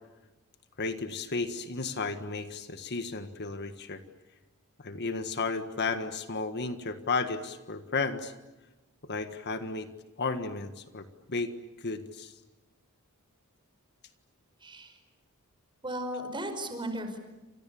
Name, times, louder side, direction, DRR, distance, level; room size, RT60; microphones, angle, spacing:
voice 1, 0.8-4.0 4.8-8.3 9.0-9.9 10.2-11.5 11.8-12.3, left 4 dB, 50° left, 9 dB, 1.7 m, -33 dB
voice 2, 14.6-15.0 15.8-17.2, right 1 dB, 20° right, 7 dB, 5.4 m, -35 dB
30.0 x 27.5 x 7.1 m, 1.1 s
head